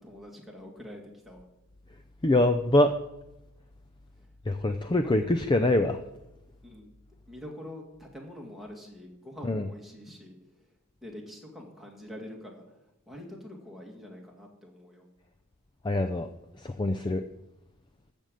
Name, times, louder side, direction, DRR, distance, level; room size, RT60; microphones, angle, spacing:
voice 1, 0.0-1.5 4.2-4.3 5.0-5.3 6.6-6.9 7.3-15.1, left 1 dB, ahead, -1 dB, 2.2 m, -45 dB
voice 2, 2.2-3.0 4.5-6.0 9.4-9.7 15.8-16.3 16.6-17.2, left 1 dB, 20° left, 8 dB, 0.5 m, -24 dB
14.0 x 5.3 x 7.7 m, 0.92 s
head